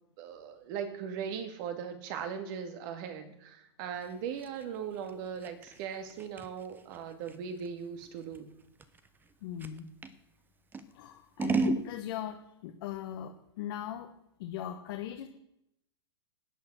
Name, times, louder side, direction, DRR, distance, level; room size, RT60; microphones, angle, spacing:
voice 1, 0.2-8.5, right 7 dB, 50° right, 8 dB, 2.1 m, -39 dB
Scissors, 4.0-10.2 10.7-11.9, right 3 dB, 15° right, 0.9 m, -35 dB
voice 2, 9.4-9.9 10.9-14.1 14.4-15.3, left 11 dB, 55° left, 4 dB, 1.3 m, -39 dB
14.0 x 8.6 x 6.3 m, 0.81 s
hypercardioid pair, 120°, 14 cm